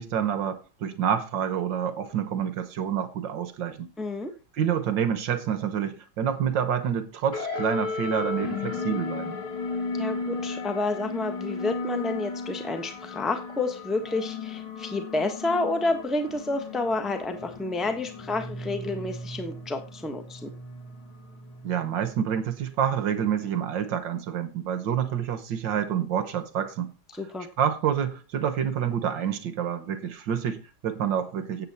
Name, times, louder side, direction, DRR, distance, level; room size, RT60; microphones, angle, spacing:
voice 1, 0.0-3.9 4.5-9.4 21.6-26.9 27.6-31.7, right 8 dB, 60° right, 1.6 m, -28 dB
voice 2, 4.0-4.3 10.0-20.5 27.1-27.5, left 2 dB, ahead, 0.8 m, -29 dB
sound 1, 7.3-22.1, left 4 dB, 70° left, 3.0 m, -35 dB
10.5 x 8.3 x 4.3 m
omnidirectional pair, 2.4 m